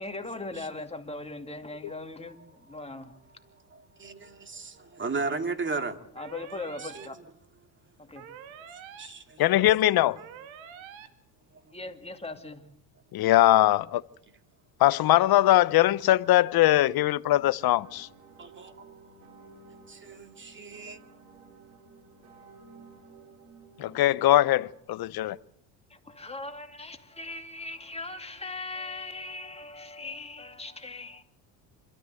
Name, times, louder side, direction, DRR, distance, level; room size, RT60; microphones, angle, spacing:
voice 1, 0.0-3.1 6.2-7.2 8.0-8.3 11.7-12.7 25.9-31.2, left 2 dB, 10° left, 2.4 m, -39 dB
voice 2, 3.5-6.1 6.8-7.2 9.0-9.6 10.0-10.3 11.5-11.7 18.4-19.3 19.9-21.0, right 3 dB, 25° right, 2.3 m, -36 dB
sound 1, 6.2-7.1 8.2-9.1 10.2-11.1, right 8 dB, 65° right, 2.4 m, -46 dB
voice 3, 9.4-10.2 13.1-14.0 14.8-18.1 23.8-25.4, left 15 dB, 45° left, 0.8 m, -21 dB
sound 2, 17.3-24.1, right 5 dB, 90° right, 3.9 m, -53 dB
26.5 x 13.5 x 7.9 m
supercardioid pair, 90°, 50 cm